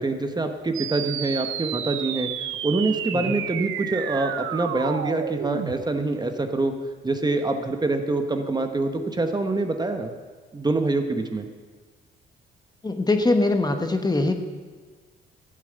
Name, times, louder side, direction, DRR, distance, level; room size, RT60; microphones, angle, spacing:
voice 1, 0.0-2.3 2.6-6.7 7.0-10.1 10.5-11.5, right 2 dB, 20° right, 6 dB, 1.2 m, -25 dB
sound 1, 0.7-5.8, right 10 dB, 90° right, 0.8 m, -31 dB
voice 2, 12.8-14.3, left 2 dB, 20° left, 6 dB, 1.3 m, -22 dB
13.0 x 7.2 x 9.3 m, 1.5 s
cardioid pair, 90°, 20 cm